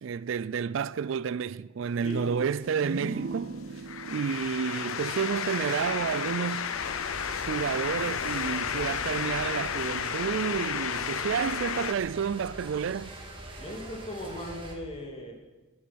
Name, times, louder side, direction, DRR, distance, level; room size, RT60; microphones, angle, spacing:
voice 1, 0.0-3.6 4.1-6.7 7.5-13.1, right 7 dB, 70° right, 0.4 m, -30 dB
sound 1, 1.8-11.9, left 7 dB, 85° left, 0.7 m, -33 dB
voice 2, 2.0-2.5 13.6-15.3, equal, 30° left, 2.5 m, -38 dB
sound 2, 2.3-5.9, right 3 dB, 50° right, 0.7 m, -39 dB
sound 3, 6.7-14.8, right 2 dB, 25° right, 2.0 m, -44 dB
15.5 x 11.5 x 6.1 m
head